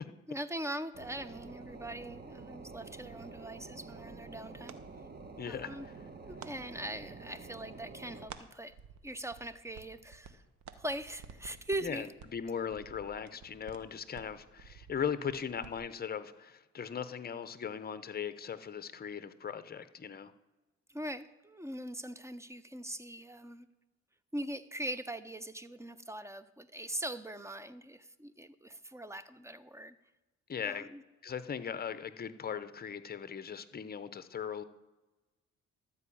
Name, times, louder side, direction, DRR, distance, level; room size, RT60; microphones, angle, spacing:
voice 1, 0.3-4.8 5.5-5.9 6.2-8.8 9.0-10.4 10.7-12.1 20.9-23.7 24.3-30.0 30.6-31.0, right 1 dB, 10° right, 14 dB, 0.5 m, -41 dB
sound 1, 0.9-8.3, right 4 dB, 35° right, 1.1 m, -48 dB
sound 2, 3.5-14.2, right 8 dB, 65° right, 0.8 m, -58 dB
voice 2, 5.4-5.7 11.8-20.3 30.5-30.9 31.2-34.6, left 7 dB, 30° left, 12 dB, 0.7 m, -39 dB
sound 3, 8.3-8.4 8.7-10.3 10.6-15.8, right 6 dB, 90° right, 1.1 m, -54 dB
12.5 x 4.8 x 8.4 m, 1.1 s
cardioid pair, 90°, 30 cm